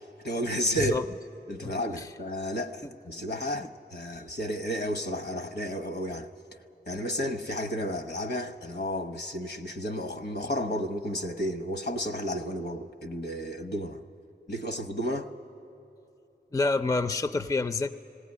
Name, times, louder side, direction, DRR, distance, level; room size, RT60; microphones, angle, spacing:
voice 1, 0.2-1.0 1.5-6.3 6.9-14.0 14.5-15.3, equal, 65° left, 7 dB, 0.9 m, -32 dB
voice 2, 1.6-2.1 3.6-3.7 16.5-17.9, left 3 dB, 20° left, 10 dB, 0.4 m, -28 dB
18.5 x 17.5 x 9.7 m, 2.9 s
wide cardioid pair, 75°, 18 cm